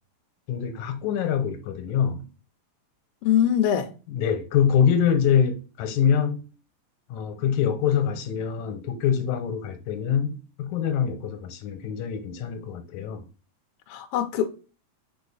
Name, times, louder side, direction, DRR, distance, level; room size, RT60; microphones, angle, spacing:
voice 1, 0.5-2.3 4.1-6.4 7.1-13.2, left 8 dB, 90° left, 2.2 m, -24 dB
voice 2, 3.2-3.9 13.9-14.5, left 10 dB, 70° left, 1.5 m, -22 dB
4.9 x 4.5 x 5.5 m
omnidirectional pair, 3.3 m